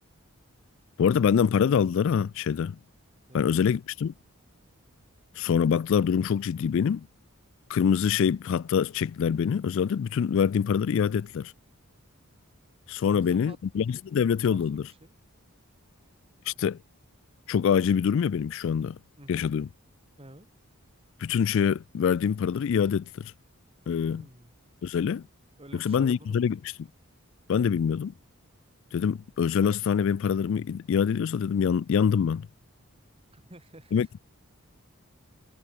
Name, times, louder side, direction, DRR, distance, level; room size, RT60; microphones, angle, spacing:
voice 1, 1.0-2.8 3.3-4.1 5.4-7.1 7.7-11.5 12.9-14.8 16.5-16.8 17.5-19.0 19.3-19.7 21.2-23.3 23.9-24.2 24.8-25.2 25.7-26.6 27.5-28.1 28.9-32.5 33.9-34.2, left 7 dB, 60° left, 0.3 m, -25 dB
voice 2, 3.3-3.6 13.0-13.6 14.4-15.1 19.2-19.5 20.2-20.5 24.0-24.5 25.6-26.7 33.3-34.1, right 1 dB, 25° right, 3.0 m, -50 dB
head